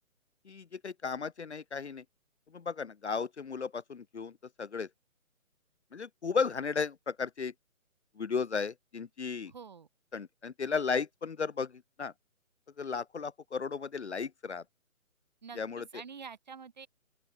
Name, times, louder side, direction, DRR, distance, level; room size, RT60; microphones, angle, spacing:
voice 1, 0.5-2.0 2.5-4.3 4.6-4.9 5.9-7.5 8.2-9.5 10.1-12.1 12.8-14.6 15.6-15.8, left 5 dB, 50° left, 0.9 m, -34 dB
voice 2, 9.4-9.9 15.4-16.9, right 6 dB, 30° right, 2.4 m, -47 dB
open air
hypercardioid pair, 180°, 42 cm